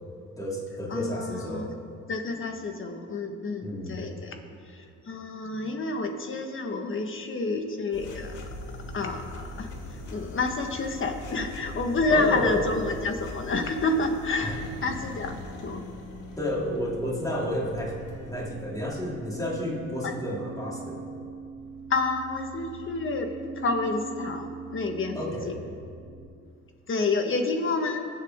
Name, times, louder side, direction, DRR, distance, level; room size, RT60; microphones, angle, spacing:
voice 1, 0.4-1.7 3.6-4.0 12.1-12.6 14.4-14.5 16.4-21.1 25.1-25.6, equal, 10° left, -4 dB, 3.1 m, -31 dB
voice 2, 0.9-1.8 2.1-4.3 4.6-8.4 8.9-15.3 15.6-15.8 20.0-20.2 21.9-25.5 26.9-28.1, left 3 dB, 40° left, 4 dB, 1.6 m, -29 dB
sound 1, 7.9-18.5, left 2 dB, 85° left, 1.7 m, -41 dB
sound 2, 16.2-26.3, right 5 dB, 15° right, 2.0 m, -42 dB
21.0 x 8.3 x 3.8 m, 2.3 s
cardioid pair, 90°, 30 cm